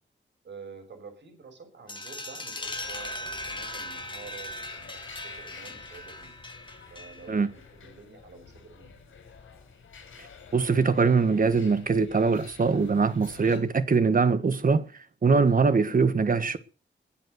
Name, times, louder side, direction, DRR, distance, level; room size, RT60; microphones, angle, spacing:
voice 1, 0.4-6.4 6.9-9.1, right 4 dB, 65° right, 6.2 m, -48 dB
sound 1, 1.9-7.4, left 1 dB, 25° left, 2.4 m, -39 dB
sound 2, 2.6-13.6, left 5 dB, 80° left, 5.3 m, -50 dB
voice 2, 10.5-14.9 15.2-16.6, right 4 dB, 45° right, 1.4 m, -22 dB
21.0 x 7.7 x 6.6 m
wide cardioid pair, 120°, 20 cm